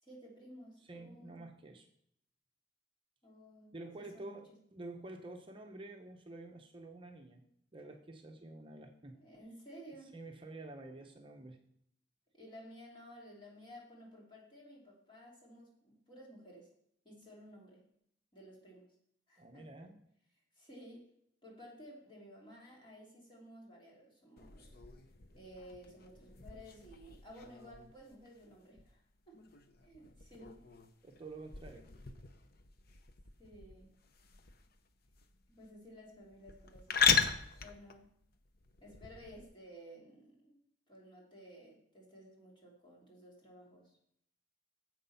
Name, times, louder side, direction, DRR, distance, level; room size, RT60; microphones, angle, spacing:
voice 1, 0.0-1.4 3.2-4.6 9.2-10.1 12.3-16.7 17.0-17.8 18.3-18.9 19.3-19.7 20.5-21.1 21.4-24.8 25.3-29.0 29.3-29.4 29.8-30.7 33.4-33.9 35.6-37.2 37.6-38.1 38.8-40.6 40.9-44.0, equal, 25° left, -3 dB, 3.1 m, -55 dB
voice 2, 0.8-1.9 3.7-7.4 7.7-9.2 10.1-11.6 19.4-20.0 31.0-32.0, right 2 dB, 30° right, 3 dB, 0.8 m, -49 dB
sound 1, 24.4-39.4, left 6 dB, 55° left, 0.7 m, -38 dB
9.4 x 7.7 x 5.7 m, 0.72 s
head